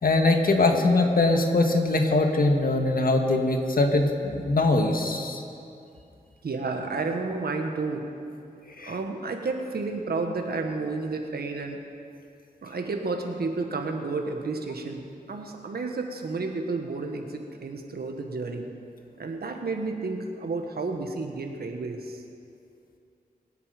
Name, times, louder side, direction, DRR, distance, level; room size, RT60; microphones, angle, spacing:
voice 1, 0.0-5.4 8.8-8.9, left 2 dB, 65° left, 3 dB, 1.7 m, -22 dB
voice 2, 6.4-8.1 8.8-11.8 12.6-18.7 19.2-22.2, right 3 dB, 80° right, 4 dB, 1.5 m, -31 dB
24.5 x 8.4 x 5.2 m, 2.5 s
cardioid pair, 55°, 16 cm